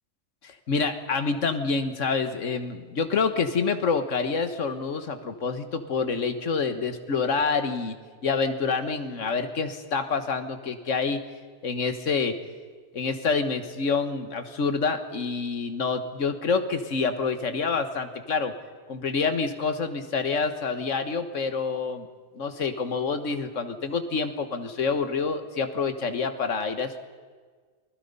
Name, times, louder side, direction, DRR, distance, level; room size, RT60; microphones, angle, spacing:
voice 1, 0.4-8.0 8.2-11.2 11.6-12.4 12.9-18.5 18.9-22.1 22.3-27.0, left 4 dB, 80° left, 9 dB, 1.8 m, -27 dB
28.0 x 20.5 x 5.5 m, 1.5 s
omnidirectional pair, 1.3 m